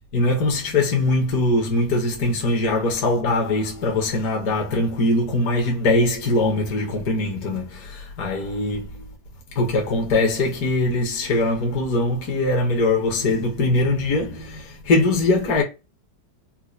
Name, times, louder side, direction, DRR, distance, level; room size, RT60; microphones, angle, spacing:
voice 1, 0.1-9.1 9.5-15.6, left 2 dB, 60° left, 1.3 m, -22 dB
4.3 x 2.2 x 2.4 m
omnidirectional pair, 2.0 m